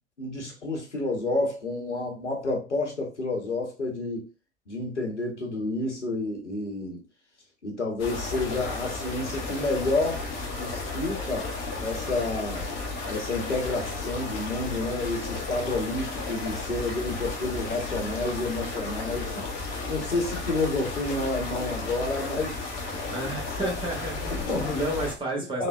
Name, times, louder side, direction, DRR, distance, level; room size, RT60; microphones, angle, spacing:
voice 1, 0.2-4.3 4.7-7.0 7.6-10.2 10.6-11.5 11.8-12.7 13.0-19.4 19.9-22.6 23.6-23.7 24.3-24.8 25.3-25.7, left 2 dB, 85° left, 0.8 m, -30 dB
sound 1, 8.0-25.1, left 3 dB, 35° left, 0.7 m, -33 dB
voice 2, 23.0-25.7, right 1 dB, 15° right, 1.1 m, -32 dB
3.3 x 2.1 x 2.4 m
figure-of-eight pair, 80°, 35 cm